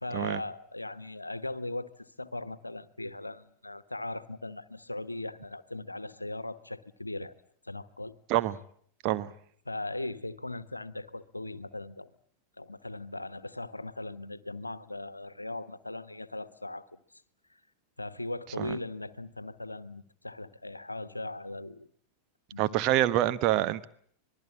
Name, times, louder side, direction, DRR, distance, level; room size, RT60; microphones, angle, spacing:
voice 1, 0.0-7.3 7.6-8.2 9.6-12.1 12.6-17.0 17.5-17.6 18.0-21.9 22.5-22.8, left 2 dB, 85° left, 15 dB, 1.1 m, -39 dB
voice 2, 22.6-23.9, right 14 dB, 40° right, 13 dB, 1.1 m, -26 dB
26.0 x 20.5 x 8.5 m, 0.62 s
figure-of-eight pair, 90°, 0 cm